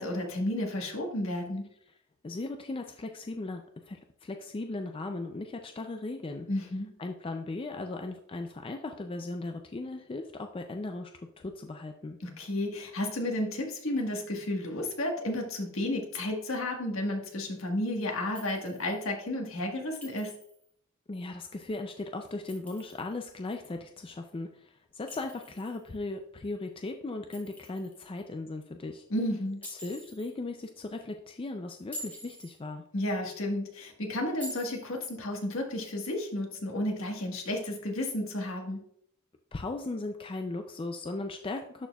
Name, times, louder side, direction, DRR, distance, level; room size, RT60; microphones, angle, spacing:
voice 1, 0.0-1.6 6.5-6.9 12.2-20.3 29.1-29.6 32.9-38.8, left 1 dB, 65° left, 1 dB, 1.5 m, -32 dB
voice 2, 2.2-6.5 7.0-11.1 11.4-12.2 21.1-29.0 29.7-32.8 39.5-41.9, left 2 dB, 25° left, 5 dB, 0.4 m, -37 dB
Chink clink, 18.4-19.0 20.0-20.7 22.3-23.2 25.1-26.0 27.3-28.1 29.6-30.3 31.8-32.5 34.4-35.1, equal, 5° left, 1.7 m, -46 dB
12.0 x 4.4 x 2.3 m, 0.66 s
head